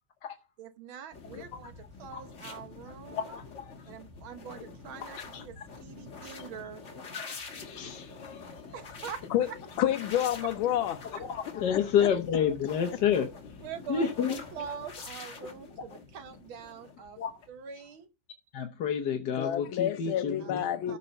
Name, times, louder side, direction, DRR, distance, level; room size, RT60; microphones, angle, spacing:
voice 1, 0.6-1.7 2.0-3.3 3.9-5.6 5.8-6.8 8.7-9.2 9.5-9.6 11.6-11.7 13.6-17.2 17.5-18.1 20.4-20.5 20.9-21.0, right 6 dB, 85° right, 2.0 m, -43 dB
sound 1, 1.1-17.8, left 4 dB, 40° left, 1.9 m, -46 dB
voice 2, 3.1-3.8 5.3-5.4 7.1-7.4 7.6-8.5 11.3-13.3 13.9-14.4 17.2-17.3 18.5-20.6, left 8 dB, 60° left, 1.5 m, -29 dB
voice 3, 9.8-11.1 11.7-11.8 19.3-21.0, left 11 dB, 85° left, 1.5 m, -29 dB
14.0 x 5.6 x 5.3 m
omnidirectional pair, 2.2 m